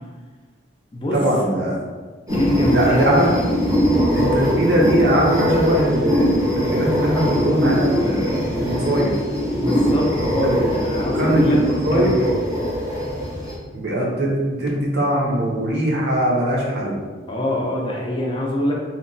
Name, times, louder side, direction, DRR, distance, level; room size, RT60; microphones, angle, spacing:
voice 1, 1.1-1.8 2.7-3.3 4.1-9.1 10.4-10.7 11.1-12.2 13.7-17.0, right 1 dB, 60° right, -3 dB, 0.6 m, -21 dB
voice 2, 2.3-3.1 9.6-11.6 11.9-12.3 17.3-18.7, left 1 dB, 25° left, -2 dB, 0.3 m, -24 dB
sound 1, 2.3-13.5, equal, 15° right, 0.6 m, -21 dB
2.8 x 2.2 x 2.6 m, 1.4 s
head